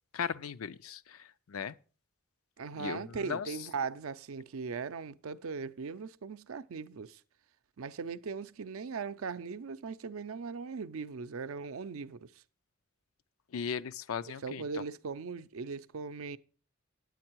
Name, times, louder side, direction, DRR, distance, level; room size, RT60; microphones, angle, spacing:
voice 1, 0.1-1.8 2.7-3.7 13.5-14.8, left 6 dB, 85° left, 0.5 m, -38 dB
voice 2, 2.6-7.2 7.8-12.4 14.4-16.4, right 5 dB, 85° right, 0.5 m, -39 dB
9.4 x 8.7 x 4.5 m
head